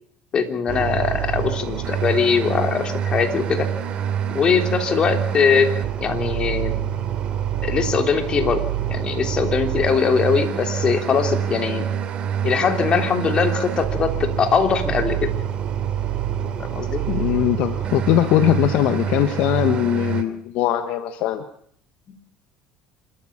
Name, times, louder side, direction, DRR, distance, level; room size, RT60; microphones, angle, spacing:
voice 1, 0.3-3.7 4.3-5.7 6.0-6.7 7.6-11.9 12.4-15.3 16.6-17.0, left 6 dB, 40° left, 6 dB, 3.3 m, -21 dB
sound 1, 0.7-20.2, right 9 dB, 45° right, 2.7 m, -26 dB
voice 2, 17.1-21.4, left 12 dB, 70° left, 9 dB, 1.4 m, -20 dB
27.0 x 13.5 x 7.3 m, 0.63 s
supercardioid pair, 105°, 3 cm